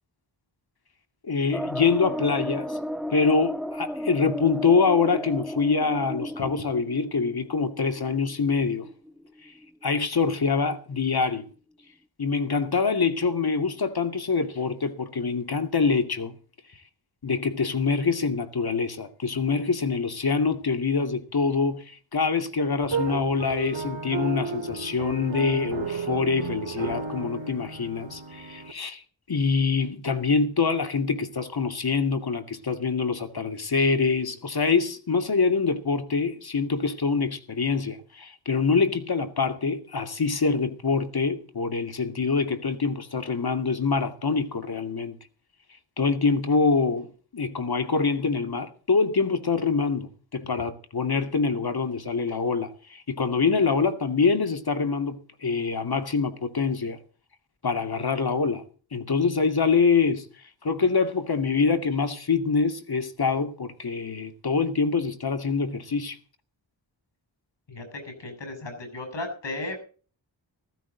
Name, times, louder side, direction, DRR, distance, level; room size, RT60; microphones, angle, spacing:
voice 1, 1.2-2.8 3.1-8.9 9.4-9.5 9.8-11.5 12.2-16.4 17.2-45.2 46.0-57.0 57.6-58.6 58.9-60.3 60.6-66.2, left 4 dB, 55° left, 2.4 m, -25 dB
sound 1, 1.5-10.0 10.4-10.5 10.7-10.8, equal, ahead, 1.0 m, -34 dB
sound 2, 22.8-28.7, right 5 dB, 80° right, 2.8 m, -33 dB
voice 2, 67.7-69.8, left 2 dB, 70° left, 7.1 m, -35 dB
16.0 x 15.0 x 4.0 m
wide cardioid pair, 115°, 45 cm